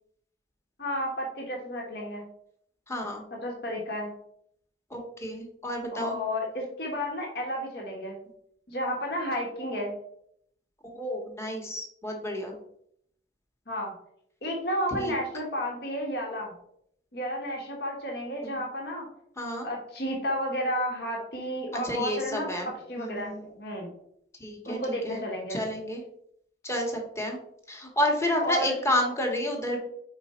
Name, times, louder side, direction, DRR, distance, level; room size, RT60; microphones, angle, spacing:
voice 1, 0.8-2.3 3.3-4.1 5.9-8.2 8.7-10.0 13.7-13.9 14.4-16.5 17.1-19.1 19.6-23.9 24.6-25.6 28.4-28.9, equal, 60° left, 0 dB, 1.4 m, -32 dB
voice 2, 2.9-3.2 4.9-6.2 10.8-12.6 15.0-15.1 18.4-18.5 19.4-19.7 21.7-22.7 22.9-23.4 24.4-25.2 25.5-26.0 26.6-27.4 27.7-29.8, left 1 dB, 15° left, 1 dB, 1.1 m, -30 dB
5.0 x 4.5 x 4.3 m, 0.71 s
head